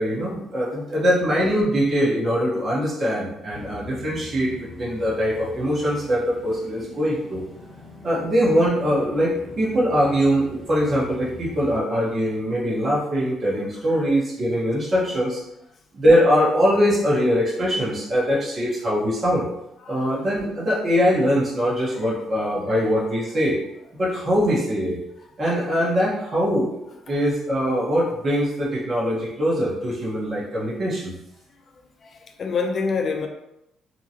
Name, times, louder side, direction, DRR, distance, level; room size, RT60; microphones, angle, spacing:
voice 1, 0.0-7.4 8.0-15.4 15.9-19.5 19.9-23.6 23.9-25.0 25.4-26.8 27.1-31.2, equal, 45° right, -5 dB, 1.1 m, -22 dB
sound 1, 3.5-11.8, left 1 dB, 10° right, 1.1 m, -42 dB
voice 2, 19.8-20.2 21.9-22.1 22.7-22.9 32.0-33.3, left 4 dB, 50° left, 3 dB, 0.4 m, -28 dB
2.8 x 2.3 x 2.8 m, 0.85 s
hypercardioid pair, 55°, 0 cm